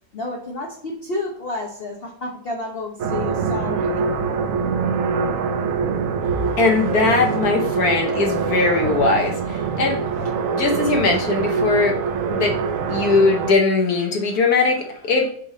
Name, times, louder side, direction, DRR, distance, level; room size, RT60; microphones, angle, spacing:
voice 1, 0.1-4.1, left 2 dB, 45° left, 0 dB, 0.9 m, -30 dB
sound 1, 3.0-13.5, right 5 dB, 65° right, 0.8 m, -24 dB
voice 2, 6.6-10.0 10.5-12.0 12.3-12.6 12.9-15.3, left 3 dB, 65° left, 2 dB, 1.3 m, -20 dB
7.0 x 3.6 x 3.7 m, 0.62 s
omnidirectional pair, 1.9 m